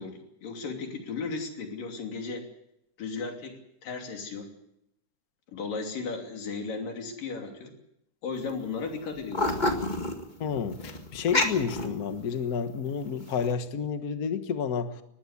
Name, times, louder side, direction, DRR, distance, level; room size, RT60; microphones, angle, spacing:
voice 1, 0.0-2.5 3.0-4.5 5.5-7.7 8.2-9.5, left 4 dB, 90° left, 3 dB, 4.6 m, -35 dB
sound 1, 8.3-8.5 8.8-12.5 13.0-13.5, left 2 dB, 25° left, 1.1 m, -29 dB
voice 2, 10.4-14.9, left 6 dB, 60° left, 9 dB, 0.9 m, -30 dB
20.0 x 15.5 x 9.6 m, 0.79 s
omnidirectional pair, 3.8 m